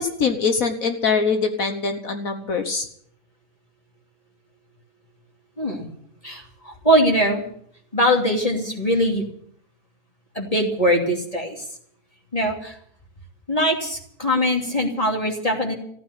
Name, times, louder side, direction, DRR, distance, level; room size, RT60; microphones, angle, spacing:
voice 1, 0.0-2.9, left 5 dB, 60° left, 7 dB, 1.6 m, -23 dB
voice 2, 6.2-7.4 7.9-9.2 10.3-11.6 12.3-12.8 13.5-15.8, equal, 25° left, 1 dB, 2.7 m, -21 dB
15.0 x 9.4 x 9.8 m, 0.66 s
omnidirectional pair, 1.6 m